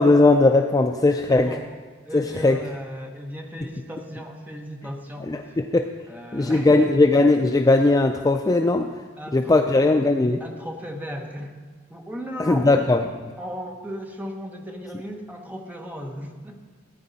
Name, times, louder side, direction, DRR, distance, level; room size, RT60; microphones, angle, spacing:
voice 1, 0.0-1.5 2.1-2.6 5.2-5.9 6.3-8.9 9.3-10.4 12.4-13.0, left 2 dB, 20° left, 5 dB, 0.3 m, -18 dB
voice 2, 1.3-1.7 2.1-5.6 6.1-6.9 9.2-10.0 10.4-11.5 11.9-12.8 13.4-16.6, equal, 10° right, 2 dB, 1.0 m, -36 dB
15.5 x 9.6 x 4.0 m, 1.5 s
head